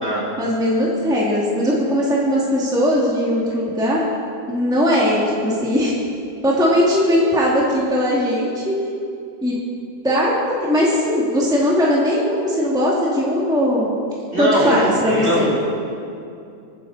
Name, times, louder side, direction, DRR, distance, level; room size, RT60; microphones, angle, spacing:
voice 1, 0.4-4.0 4.5-5.9 6.4-8.7 9.4-9.6 10.0-14.0 14.4-15.6, equal, ahead, -6 dB, 2.1 m, -19 dB
voice 2, 14.3-15.6, equal, 35° right, -5 dB, 3.6 m, -21 dB
25.5 x 10.0 x 4.1 m, 2.6 s
omnidirectional pair, 1.9 m